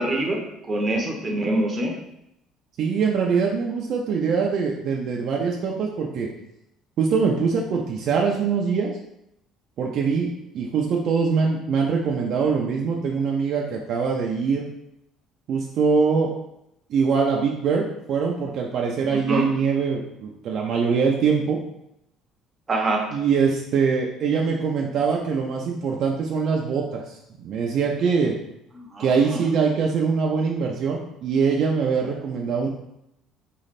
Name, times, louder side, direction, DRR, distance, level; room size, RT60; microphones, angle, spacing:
voice 1, 0.0-1.9 19.1-19.5 22.7-23.1 28.8-29.4, right 1 dB, 20° right, 1 dB, 0.8 m, -25 dB
voice 2, 2.8-6.3 7.0-8.9 9.8-14.6 15.5-16.3 16.9-21.6 23.1-28.3 29.0-32.7, right 5 dB, 50° right, -1 dB, 0.5 m, -23 dB
3.9 x 3.2 x 4.1 m, 0.82 s
cardioid pair, 150°, 0 cm